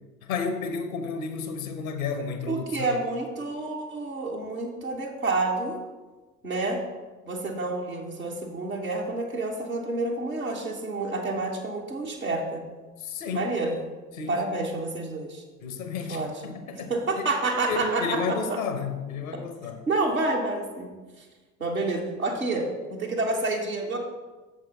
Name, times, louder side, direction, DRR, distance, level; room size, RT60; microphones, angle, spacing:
voice 1, 0.2-2.9 13.0-13.5 14.1-14.3 15.6-16.2 16.7-16.9 17.2-17.3 17.7-19.8, left 5 dB, 80° left, 8 dB, 0.9 m, -31 dB
voice 2, 2.5-5.8 6.4-6.8 7.2-12.6 13.3-13.8 14.3-15.4 16.1-18.6 19.9-20.9 21.2-21.3 21.6-24.0, right 2 dB, 90° right, -2 dB, 1.0 m, -29 dB
8.0 x 6.7 x 4.0 m, 1.2 s
figure-of-eight pair, 45°, 41 cm